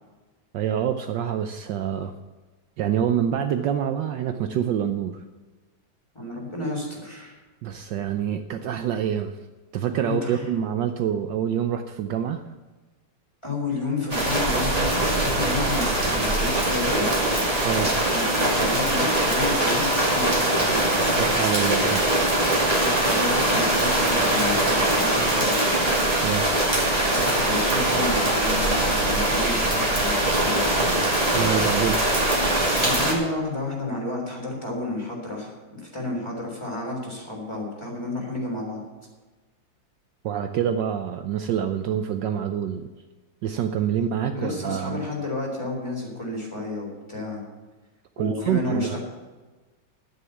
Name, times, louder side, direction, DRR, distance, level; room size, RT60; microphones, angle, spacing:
voice 1, 0.5-2.1 2.8-5.2 7.6-9.4 9.7-12.4 17.6-17.9 21.2-22.1 26.2-26.5 31.3-32.0 40.2-42.8 43.4-45.0 48.2-49.0, right 9 dB, 70° right, 8 dB, 1.3 m, -26 dB
voice 2, 6.1-7.4 10.0-10.5 13.4-17.3 17.8-21.1 22.7-25.6 26.9-30.7 32.8-38.8 44.3-47.4 48.2-49.0, left 2 dB, 15° left, -1 dB, 3.8 m, -31 dB
sound 1, 14.1-33.1, right 1 dB, 20° right, 2.3 m, -22 dB
11.5 x 9.3 x 7.1 m, 1.3 s
omnidirectional pair, 2.2 m